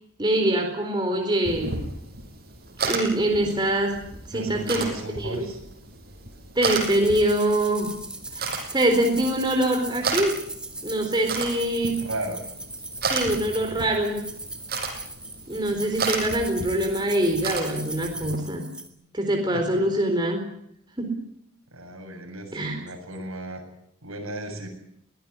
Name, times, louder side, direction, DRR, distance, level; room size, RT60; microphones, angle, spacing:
voice 1, 0.2-1.8 2.8-4.0 4.3-4.8 5.2-5.5 6.6-8.0 8.3-10.4 10.8-12.0 13.1-14.3 15.5-18.7 19.1-20.5 21.0-21.2 22.5-22.8, right 1 dB, 20° right, 3 dB, 4.1 m, -24 dB
sound 1, 1.4-18.4, right 4 dB, 45° right, 5.8 m, -34 dB
voice 2, 4.3-5.6 12.0-12.4 19.5-19.8 21.7-23.6 24.0-24.7, right 1 dB, 80° right, 3 dB, 7.5 m, -35 dB
sound 2, 6.6-18.9, right 2 dB, 5° right, 2.2 m, -38 dB
22.5 x 17.5 x 9.8 m, 0.73 s
head